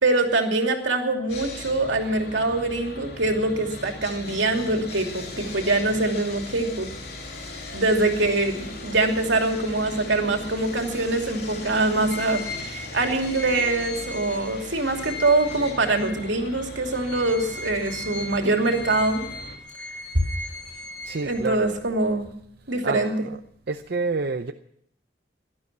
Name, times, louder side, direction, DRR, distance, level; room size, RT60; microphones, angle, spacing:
voice 1, 0.0-6.9 7.7-19.3 20.1-20.2 21.2-22.3 22.7-23.1, right 2 dB, 80° right, 3 dB, 2.8 m, -24 dB
Sawing, 1.3-19.6, left 2 dB, 60° left, 3.0 m, -39 dB
sound 1, 12.1-16.5 16.9-21.8, left 3 dB, 80° left, 2.1 m, -38 dB
voice 2, 21.0-21.6 22.8-23.4 23.7-24.5, right 4 dB, 60° right, 7 dB, 0.7 m, -28 dB
17.5 x 12.5 x 6.1 m, 0.69 s
head